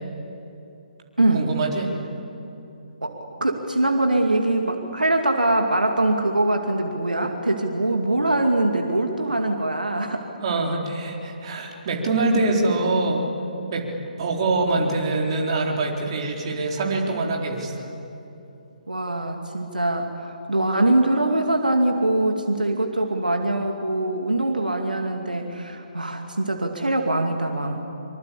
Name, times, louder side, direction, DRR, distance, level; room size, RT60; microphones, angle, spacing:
voice 1, 1.3-1.9 10.4-13.2 13.7-13.9 14.2-17.9, right 2 dB, 40° right, 0 dB, 4.2 m, -24 dB
voice 2, 3.0-10.3 18.9-27.8, right 2 dB, 80° right, 3 dB, 2.4 m, -23 dB
25.5 x 25.5 x 8.5 m, 2.8 s
figure-of-eight pair, 140°, 5 cm